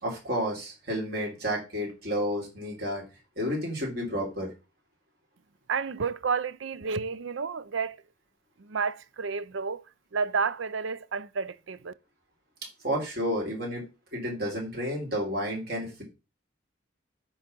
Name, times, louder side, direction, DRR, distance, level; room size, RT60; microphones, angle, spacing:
voice 1, 0.0-3.0 3.4-4.5 12.8-13.9 14.1-16.0, equal, 50° right, 3.5 m, -31 dB
voice 2, 5.7-8.0 8.6-9.8 10.1-11.9, right 5 dB, 70° right, 0.5 m, -31 dB
9.9 x 3.9 x 5.2 m
head